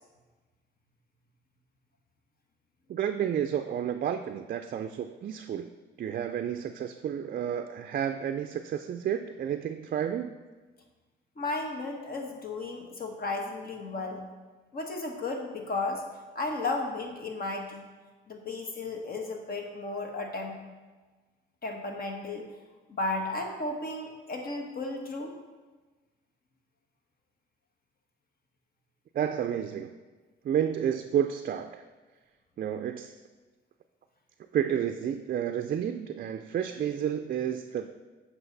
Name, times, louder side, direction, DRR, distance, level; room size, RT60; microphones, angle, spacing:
voice 1, 2.9-5.7 6.0-10.3 29.1-30.0 30.4-31.8 32.6-33.1 34.5-37.9, right 9 dB, 50° right, 7 dB, 0.4 m, -31 dB
voice 2, 11.4-14.2 14.7-16.0 16.3-17.8 18.3-20.6 21.6-22.5 22.9-25.3, left 2 dB, 50° left, 3 dB, 1.3 m, -34 dB
7.9 x 5.6 x 4.0 m, 1.3 s
cardioid pair, 90°, 20 cm